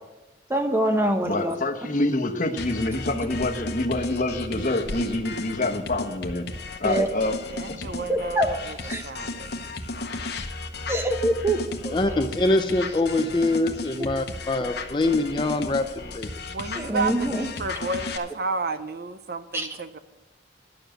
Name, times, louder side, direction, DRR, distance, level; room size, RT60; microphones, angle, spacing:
voice 1, 0.5-1.6 6.8-7.1 8.1-8.5 8.8-9.0 10.9-12.0 16.8-17.5 19.5-19.7, right 1 dB, 15° right, 5 dB, 1.0 m, -24 dB
sound 1, 0.7-2.1 2.4-2.9 3.3-9.6 10.2-13.5, equal, 75° right, 3.7 m, -46 dB
voice 2, 1.2-6.5 6.8-7.3 7.8-8.1, left 2 dB, 45° left, 4 dB, 1.0 m, -26 dB
sound 2, 2.6-18.2, left 2 dB, 60° left, 1.0 m, -34 dB
voice 3, 7.5-8.8 9.0-9.7 16.5-20.0, right 3 dB, 55° right, 11 dB, 0.6 m, -31 dB
voice 4, 11.9-16.3, left 2 dB, 25° left, 6 dB, 0.5 m, -24 dB
10.5 x 7.0 x 7.6 m, 1.1 s
head